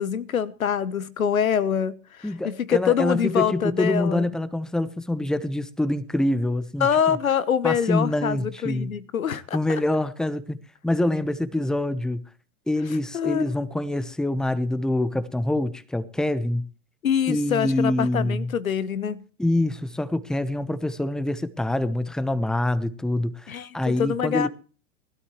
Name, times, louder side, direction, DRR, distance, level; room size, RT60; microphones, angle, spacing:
voice 1, 0.0-4.3 6.8-9.8 13.1-13.6 17.0-19.2 23.5-24.5, left 8 dB, 90° left, 1.1 m, -25 dB
voice 2, 2.2-7.2 7.6-8.9 9.5-10.6 10.8-12.2 12.7-16.6 17.3-18.5 19.4-24.5, left 1 dB, ahead, 0.9 m, -25 dB
19.5 x 12.5 x 3.1 m
hypercardioid pair, 100°, 40 cm